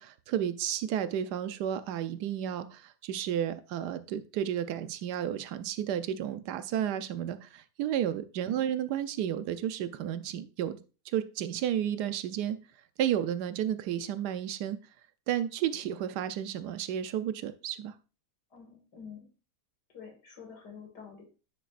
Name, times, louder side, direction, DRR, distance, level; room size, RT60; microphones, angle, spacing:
voice 1, 0.0-10.8 11.1-12.6 13.0-14.8 15.3-17.9, right 10 dB, 75° right, 12 dB, 1.2 m, -32 dB
voice 2, 18.5-19.3 19.9-21.2, left 6 dB, 70° left, 2 dB, 2.8 m, -48 dB
9.1 x 6.6 x 2.5 m, 0.34 s
omnidirectional pair, 1.8 m